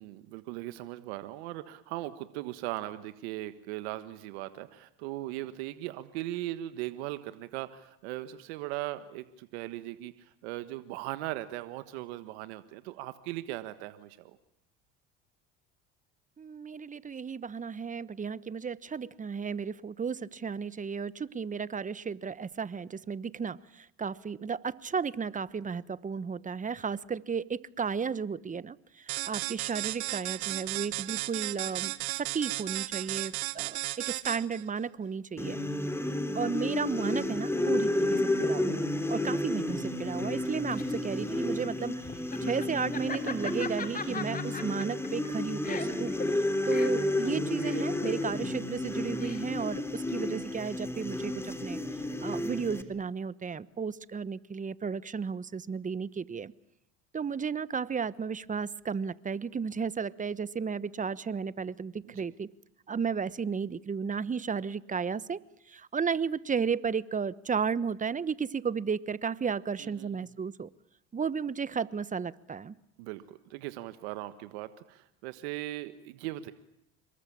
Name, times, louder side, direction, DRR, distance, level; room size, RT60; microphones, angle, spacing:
voice 1, 0.0-14.4 41.1-41.6 62.0-62.3 69.8-70.3 73.0-76.5, right 16 dB, 85° right, 12 dB, 1.5 m, -39 dB
voice 2, 16.4-35.6 36.3-38.7 39.1-42.1 42.4-51.8 52.2-56.5 57.1-62.5 62.9-65.4 65.7-70.7 71.1-72.7, right 6 dB, 25° right, 18 dB, 1.2 m, -34 dB
sound 1, 29.1-34.6, right 19 dB, 70° right, 1.5 m, -34 dB
sound 2, 35.4-52.8, left 1 dB, 10° left, 3.4 m, -31 dB
Laughter, 40.3-49.7, left 5 dB, 25° left, 3.4 m, -40 dB
27.0 x 22.5 x 8.7 m, 0.76 s
supercardioid pair, 90°, 32 cm